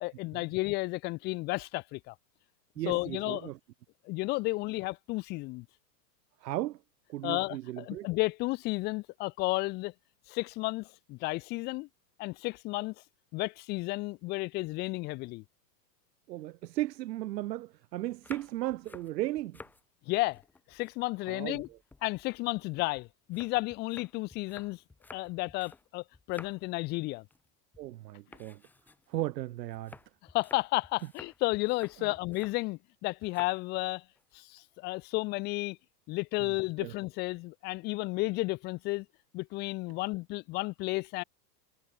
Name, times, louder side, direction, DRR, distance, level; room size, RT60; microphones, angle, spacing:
voice 1, 0.0-2.1 2.9-3.5 4.0-5.6 7.2-9.9 10.3-11.9 12.2-12.9 13.3-15.4 20.1-20.4 20.7-21.7 22.0-24.8 25.1-27.2 30.3-34.0 34.3-35.8 36.1-39.0 39.3-41.2, left 22 dB, 20° left, 1.1 m, -32 dB
voice 2, 2.8-3.6 6.4-6.8 7.1-8.1 16.3-19.6 21.3-21.8 27.8-28.6 29.1-30.0 32.0-32.1 36.4-36.5 36.8-36.9, right 15 dB, 75° right, 1.0 m, -36 dB
sound 1, 18.1-19.8 20.2-21.4 21.6-25.9 26.1-26.8 27.2-27.5 27.7-27.9 28.3-32.6 33.2-33.6 33.9-34.3, left 3 dB, 5° left, 1.3 m, -53 dB
supercardioid pair, 180°, 50 cm